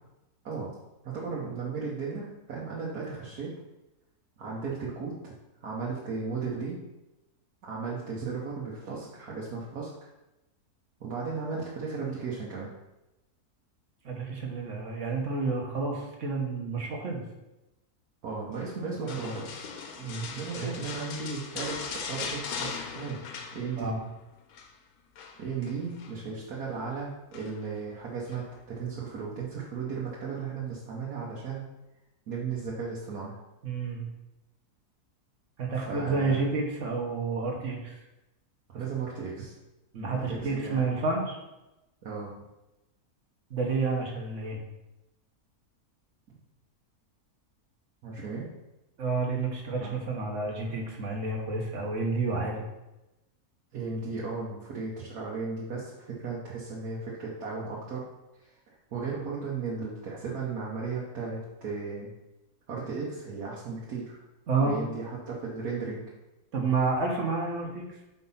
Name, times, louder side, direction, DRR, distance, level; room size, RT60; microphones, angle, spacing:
voice 1, 1.0-3.5 4.4-5.1 5.6-6.8 7.6-9.9 11.0-12.7 18.2-19.6 20.3-23.2 23.5-23.9 25.4-31.6 32.3-33.3 35.7-36.5 38.7-39.5 40.1-40.8 42.0-42.3 48.0-48.5 49.8-50.0 53.7-58.0 58.4-58.5 58.9-62.1 62.7-64.2 64.6-66.1, right 4 dB, 70° right, -5 dB, 1.6 m, -35 dB
voice 2, 14.0-17.2 20.0-20.3 20.5-20.7 23.8-24.0 33.6-34.1 35.6-38.0 39.9-41.4 43.5-44.6 49.0-52.6 64.5-64.7 66.5-67.9, right 4 dB, 50° right, 1 dB, 1.5 m, -30 dB
sound 1, 19.1-24.1 24.3-24.7 25.2-26.2 27.3-27.8 28.3-28.4, left 5 dB, 70° left, 1.2 m, -39 dB
5.3 x 4.0 x 5.6 m, 0.98 s
omnidirectional pair, 1.7 m